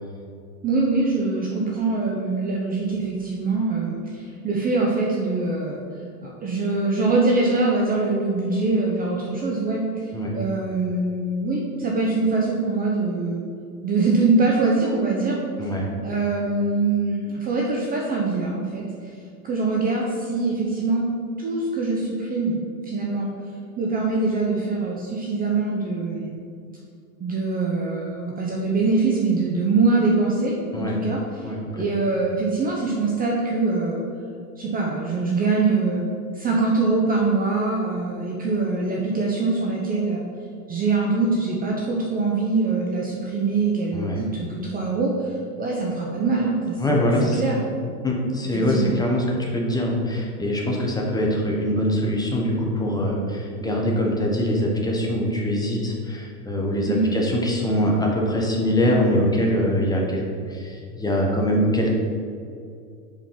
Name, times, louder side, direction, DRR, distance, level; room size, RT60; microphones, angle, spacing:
voice 1, 0.6-5.8 6.2-13.4 13.8-15.7 16.0-18.9 19.4-21.1 21.4-22.6 22.8-23.3 23.8-26.4 27.2-34.0 34.6-36.1 36.3-40.2 40.7-47.6 48.5-49.0 56.9-57.1, right 3 dB, 20° right, -2 dB, 0.6 m, -23 dB
voice 2, 31.4-31.8 43.9-44.2 46.8-47.4 48.0-49.2 49.5-60.2 60.5-61.9, equal, 10° left, -1 dB, 0.8 m, -23 dB
5.2 x 5.2 x 5.7 m, 2.4 s
supercardioid pair, 130°, 48 cm